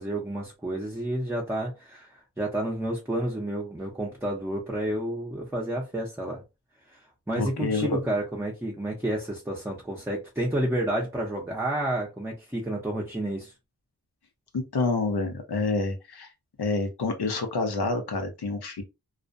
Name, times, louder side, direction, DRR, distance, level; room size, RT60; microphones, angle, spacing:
voice 1, 0.0-6.4 7.3-13.5, right 1 dB, 5° right, 0.6 m, -30 dB
voice 2, 7.4-8.0 14.5-16.3 16.6-18.8, left 3 dB, 80° left, 0.8 m, -28 dB
2.4 x 2.1 x 2.5 m
wide cardioid pair, 95°, 38 cm